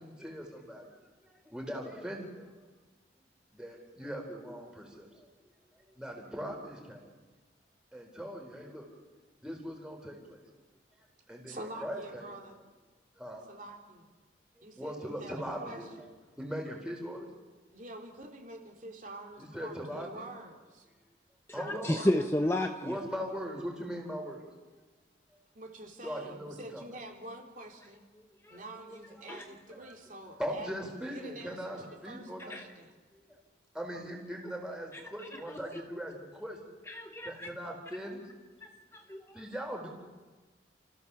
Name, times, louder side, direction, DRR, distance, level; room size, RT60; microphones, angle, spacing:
voice 1, 0.0-2.6 3.5-5.5 5.9-7.2 7.9-8.9 9.4-10.4 11.3-12.4 13.2-13.4 14.6-16.1 16.4-17.3 19.4-20.3 21.5-22.0 22.8-24.5 26.0-26.8 28.5-28.6 29.5-29.9 30.4-32.5 33.1-33.3 33.7-36.6 37.2-38.2 39.3-39.9, equal, 5° right, 0 dB, 4.3 m, -40 dB
voice 2, 11.5-12.6 13.5-14.0 14.6-15.8 17.7-20.9 21.9-22.3 25.5-28.0 28.5-30.7 31.1-32.9, right 1 dB, 45° right, 2 dB, 3.1 m, -47 dB
voice 3, 21.5-23.0 28.4-28.6 28.9-29.0 29.3-29.4 32.5-32.6 34.9-35.0 35.5-35.6 36.9-37.5 38.6-39.5, left 1 dB, 15° left, 4 dB, 0.9 m, -32 dB
30.0 x 15.5 x 7.1 m, 1.3 s
head